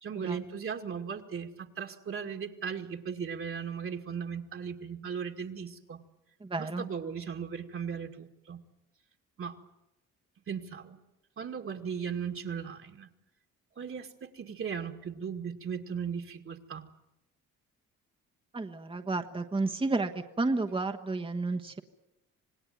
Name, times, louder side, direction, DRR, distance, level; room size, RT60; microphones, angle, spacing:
voice 1, 0.0-6.0 6.6-8.6 9.4-9.6 10.5-11.0 11.4-13.1 13.8-16.8, right 6 dB, 45° right, 3 dB, 2.1 m, -37 dB
voice 2, 6.4-6.9 18.5-20.1 20.4-21.8, right 3 dB, 15° right, 6 dB, 1.3 m, -31 dB
27.0 x 19.0 x 9.4 m, 0.94 s
cardioid pair, 90°, 30 cm